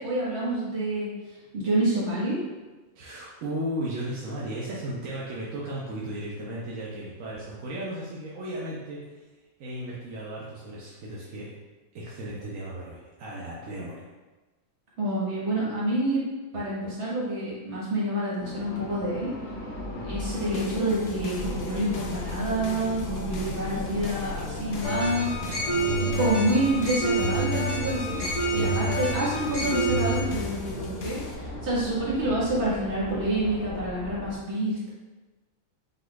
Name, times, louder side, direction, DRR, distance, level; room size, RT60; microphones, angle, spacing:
voice 1, 0.0-2.4 15.0-16.2 16.5-19.3 20.1-25.4 26.0-28.2 28.5-34.9, right 1 dB, 60° right, -7 dB, 1.7 m, -28 dB
voice 2, 2.9-9.0 9.6-11.5 11.9-14.1 19.9-20.2, right 1 dB, 85° right, -5 dB, 1.1 m, -35 dB
sound 1, 18.4-34.4, left 1 dB, 70° left, 1.2 m, -36 dB
sound 2, 20.2-31.4, left 2 dB, 55° left, 0.6 m, -42 dB
sound 3, 24.8-30.2, right 1 dB, 35° left, 1.1 m, -28 dB
5.5 x 3.8 x 2.3 m, 1.2 s
omnidirectional pair, 1.4 m